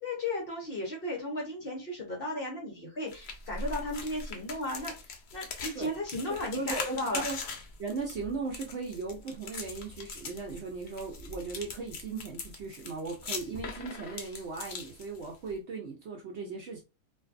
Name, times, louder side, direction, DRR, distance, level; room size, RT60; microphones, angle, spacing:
voice 1, 0.0-4.9 5.3-7.2, left 1 dB, 50° left, 0.8 m, -35 dB
sound 1, 3.1-15.5, left 4 dB, 90° left, 0.4 m, -41 dB
voice 2, 6.3-7.4 7.8-16.8, right 4 dB, 65° right, 0.7 m, -37 dB
2.5 x 2.2 x 2.4 m
omnidirectional pair, 1.5 m